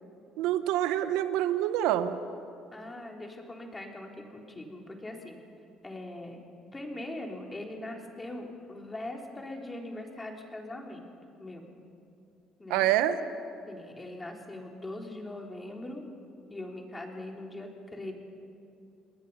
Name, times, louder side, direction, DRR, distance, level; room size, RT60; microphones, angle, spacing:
voice 1, 0.4-2.2 12.7-13.2, right 12 dB, 85° right, 11 dB, 1.1 m, -26 dB
voice 2, 2.7-5.4 5.8-6.4 6.7-11.1 11.4-11.7 12.6-12.9 13.7-16.0 16.5-18.1, left 1 dB, 20° left, 1 dB, 3.7 m, -41 dB
28.5 x 20.5 x 5.7 m, 2.5 s
supercardioid pair, 80°, 0 cm